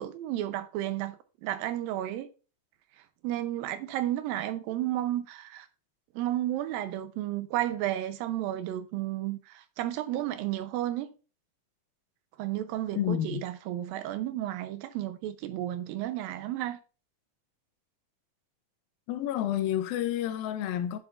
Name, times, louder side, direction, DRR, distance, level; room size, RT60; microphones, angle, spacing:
voice 1, 0.0-2.3 3.2-5.7 6.2-11.1 12.4-16.8, right 13 dB, 85° right, 2.5 m, -32 dB
voice 2, 13.0-13.4 19.1-21.0, left 11 dB, 90° left, 2.5 m, -29 dB
8.2 x 7.4 x 2.5 m
omnidirectional pair, 4.0 m